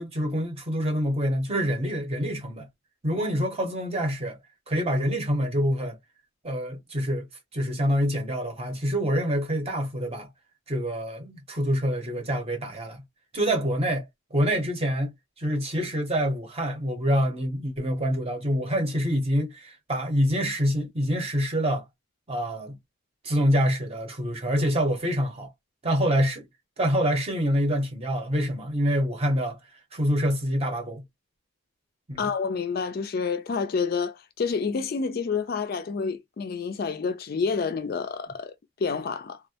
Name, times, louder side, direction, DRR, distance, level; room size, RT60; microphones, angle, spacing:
voice 1, 0.0-2.7 3.0-4.4 4.7-6.0 6.4-7.3 7.5-10.3 10.7-13.0 13.3-14.1 14.3-15.1 15.4-21.8 22.3-22.8 23.2-25.5 25.8-26.5 26.8-29.6 29.9-31.0 32.1-32.2, equal, 30° right, 0.7 m, -26 dB
voice 2, 32.2-39.4, left 5 dB, 45° left, 0.3 m, -29 dB
2.3 x 2.1 x 2.7 m
head